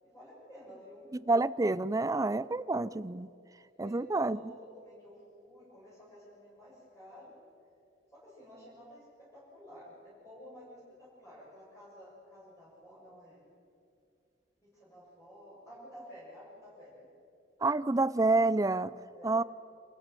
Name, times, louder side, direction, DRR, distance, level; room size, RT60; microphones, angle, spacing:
voice 1, 0.0-1.1 3.8-7.4 8.1-13.5 14.6-17.1 19.1-19.3, equal, 15° left, -10 dB, 7.0 m, -52 dB
voice 2, 1.3-3.3 3.8-4.4 17.6-18.9 19.2-19.4, right 2 dB, 20° right, 17 dB, 0.5 m, -28 dB
26.5 x 14.0 x 9.1 m, 2.5 s
head